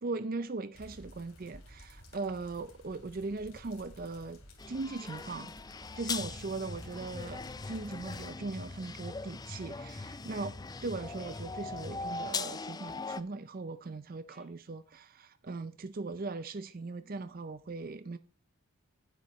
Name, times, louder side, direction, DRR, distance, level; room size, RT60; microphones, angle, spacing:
voice 1, 0.0-4.4 4.7-5.5 5.9-10.5 10.8-18.2, right 3 dB, 40° right, 0.5 m, -39 dB
sound 1, 0.7-8.2, left 1 dB, 70° left, 3.0 m, -54 dB
sound 2, 4.6-13.2, left 4 dB, 15° left, 0.4 m, -40 dB
sound 3, 5.0-5.2 8.1-8.3 11.2-11.4 14.3-14.5, left 1 dB, ahead, 1.5 m, -62 dB
11.0 x 9.3 x 3.1 m
head